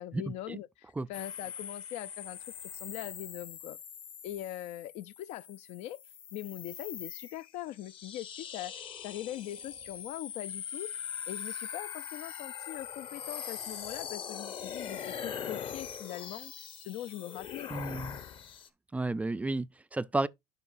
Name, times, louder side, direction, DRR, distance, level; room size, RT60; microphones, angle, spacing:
voice 1, 0.0-3.8 4.2-6.0 6.3-10.9 11.3-16.5 16.8-17.9, left 14 dB, 70° left, 0.5 m, -42 dB
sound 1, 1.1-18.7, left 8 dB, 50° left, 1.3 m, -42 dB
voice 2, 17.7-18.2 18.9-20.3, right 2 dB, 10° right, 0.4 m, -32 dB
11.0 x 5.5 x 2.5 m
supercardioid pair, 100°, 11 cm